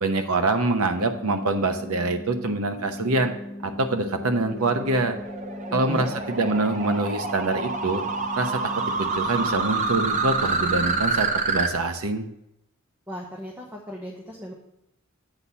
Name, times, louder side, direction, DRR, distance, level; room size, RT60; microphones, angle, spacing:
voice 1, 0.0-3.3 3.6-5.2 5.7-8.0 8.4-8.6 9.0-12.3, right 2 dB, 85° right, 6 dB, 0.9 m, -25 dB
sound 1, 1.0-11.0, left 1 dB, 30° left, 0.5 m, -39 dB
sound 2, 3.6-11.7, right 4 dB, 35° right, 0.7 m, -28 dB
voice 2, 5.7-6.1 13.1-14.5, equal, 10° right, -1 dB, 0.9 m, -35 dB
8.1 x 4.1 x 6.9 m, 0.83 s
head